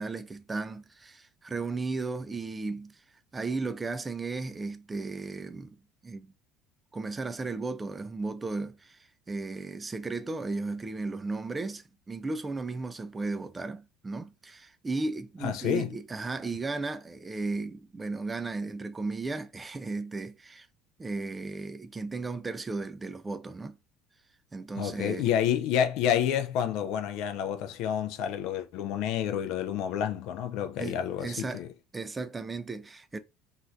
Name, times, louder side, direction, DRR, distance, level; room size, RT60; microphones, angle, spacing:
voice 1, 0.0-3.0 3.3-5.8 6.0-6.3 6.9-20.7 21.0-23.8 24.5-25.3 30.8-31.6 31.9-33.2, right 3 dB, 20° right, 0.4 m, -35 dB
voice 2, 15.4-15.9 24.8-31.7, left 9 dB, 55° left, 0.4 m, -29 dB
3.0 x 2.4 x 2.4 m
figure-of-eight pair, 65°, 0 cm